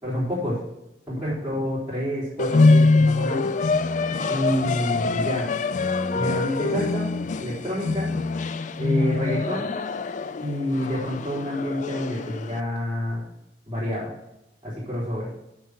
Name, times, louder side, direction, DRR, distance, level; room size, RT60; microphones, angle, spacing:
voice 1, 0.0-0.6 1.1-3.5 4.3-5.5 6.1-7.1 7.4-8.1 8.8-9.7 10.4-13.2 13.7-14.1 14.6-15.3, left 1 dB, 10° right, -12 dB, 4.1 m, -28 dB
sound 1, 2.4-12.6, left 3 dB, 40° left, 0.4 m, -24 dB
8.2 x 6.6 x 6.3 m, 0.89 s
head